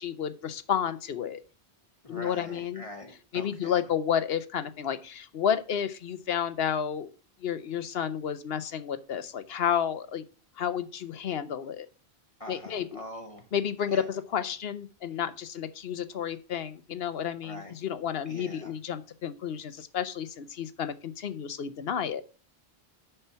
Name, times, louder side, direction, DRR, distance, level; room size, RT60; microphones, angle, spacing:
voice 1, 0.0-1.4 2.1-2.8 3.3-7.1 7.4-10.2 10.6-11.9 12.5-13.0 13.5-22.2, left 8 dB, 70° left, 12 dB, 1.0 m, -31 dB
voice 2, 2.0-3.8 12.4-13.5 13.9-14.1 17.4-17.7 18.3-18.7, left 1 dB, 35° left, 4 dB, 1.0 m, -43 dB
6.7 x 5.9 x 5.6 m, 0.37 s
omnidirectional pair, 1.1 m